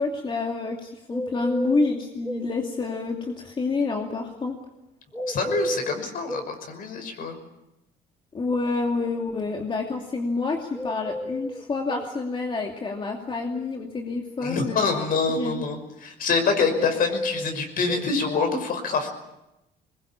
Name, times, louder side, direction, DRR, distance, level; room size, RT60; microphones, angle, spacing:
voice 1, 0.0-4.6 8.3-15.0 15.4-15.6, left 3 dB, 30° left, 1 dB, 2.7 m, -28 dB
sound 1, 1.1-2.5 5.1-6.5 10.7-12.1 16.7-18.1, equal, 5° left, 2.1 m, -32 dB
voice 2, 5.3-7.4 14.4-19.1, left 4 dB, 55° left, 6 dB, 5.8 m, -26 dB
22.5 x 21.0 x 8.8 m, 0.92 s
cardioid pair, 110°, 17 cm